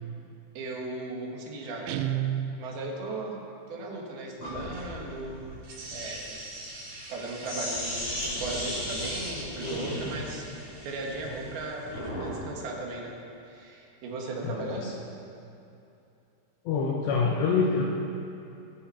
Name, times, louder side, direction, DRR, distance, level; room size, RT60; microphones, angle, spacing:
voice 1, 0.5-3.4 3.7-5.5 5.9-6.5 7.1-13.1 13.4-15.0, right 2 dB, 60° right, -1 dB, 3.2 m, -37 dB
Guitar, 1.9-3.1, right 10 dB, 90° right, 3.2 m, -31 dB
Sink (filling or washing), 4.4-12.4, left 1 dB, 30° left, 4.6 m, -36 dB
sound 1, 5.6-12.1, right 1 dB, 45° right, 4.3 m, -45 dB
voice 2, 14.4-14.9 16.7-17.9, left 5 dB, 75° left, -1 dB, 2.9 m, -26 dB
21.0 x 7.1 x 5.7 m, 2.7 s
omnidirectional pair, 5.5 m